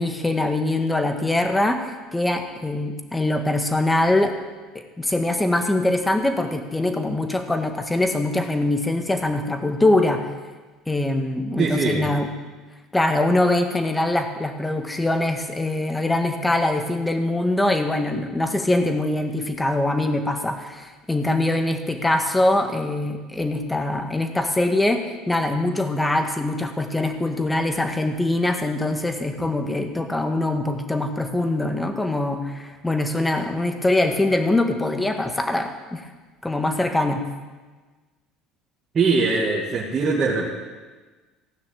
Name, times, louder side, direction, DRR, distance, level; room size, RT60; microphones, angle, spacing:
voice 1, 0.0-4.4 5.0-10.2 10.9-12.3 12.9-36.1 36.4-37.2, left 2 dB, 10° left, 6 dB, 1.7 m, -23 dB
voice 2, 11.6-12.1 38.9-40.4, right 4 dB, 35° right, -5 dB, 2.4 m, -21 dB
16.5 x 6.2 x 9.0 m, 1.3 s
supercardioid pair, 100°, 0 cm